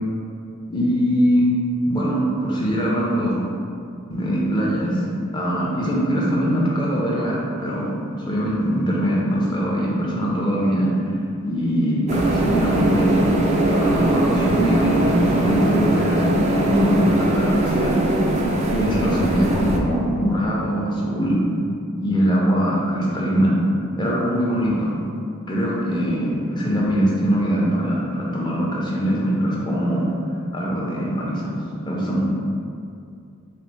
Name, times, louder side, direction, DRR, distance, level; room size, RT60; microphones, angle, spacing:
voice 1, 0.7-1.4 1.8-3.4 4.1-5.0 5.3-7.9 8.3-10.9 11.4-13.3 13.7-16.2 16.5-18.0 18.7-21.4 22.0-23.6 24.0-24.9 25.5-30.1 30.5-32.2, equal, 20° left, -5 dB, 0.6 m, -22 dB
sound 1, 12.1-19.8, right 1 dB, 30° right, 0.3 m, -20 dB
4.1 x 2.0 x 4.3 m, 2.4 s
head